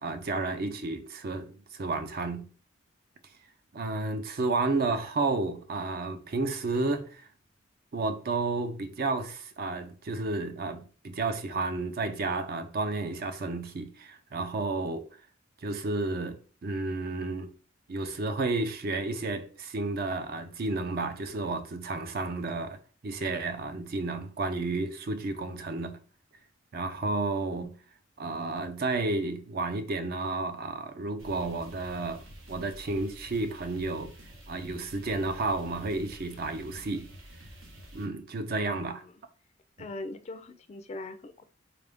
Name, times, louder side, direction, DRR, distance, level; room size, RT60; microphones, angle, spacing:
voice 1, 0.0-2.5 3.7-7.3 7.9-15.1 15.6-17.5 17.9-26.0 26.7-27.8 28.2-32.2 32.5-34.1 34.5-37.1 37.9-39.0, right 3 dB, 50° right, 0.5 m, -31 dB
sound 1, 31.2-38.1, equal, 85° right, 1.1 m, -49 dB
voice 2, 38.6-39.1 39.8-41.4, left 2 dB, 35° left, 0.3 m, -41 dB
3.7 x 2.5 x 3.4 m
head